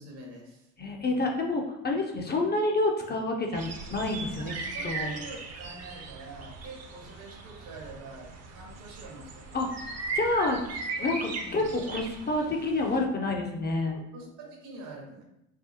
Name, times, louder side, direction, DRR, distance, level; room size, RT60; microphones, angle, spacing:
voice 1, 0.0-0.7 4.4-9.6 11.4-11.7 14.1-15.2, right 3 dB, 70° right, -1 dB, 1.3 m, -45 dB
voice 2, 0.8-4.5 4.8-5.1 9.5-9.8 10.1-10.6 11.0-14.0, left 2 dB, 25° left, 2 dB, 0.6 m, -28 dB
sound 1, 3.5-13.0, right 3 dB, 40° right, 0.7 m, -38 dB
4.9 x 2.1 x 2.8 m, 0.83 s
hypercardioid pair, 75°, 42 cm